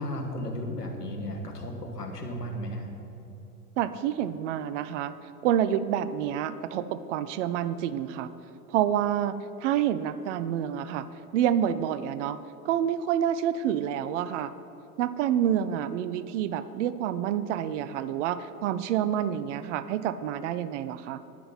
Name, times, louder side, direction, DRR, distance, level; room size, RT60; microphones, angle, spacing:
voice 1, 0.0-2.9, equal, 80° left, 3 dB, 1.8 m, -34 dB
voice 2, 3.8-5.1 5.4-8.3 8.7-9.3 9.6-11.1 11.3-12.4 12.6-14.5 15.0-21.2, right 10 dB, 50° right, 14 dB, 0.7 m, -28 dB
20.0 x 7.8 x 4.2 m, 3.0 s
figure-of-eight pair, 85°, 46 cm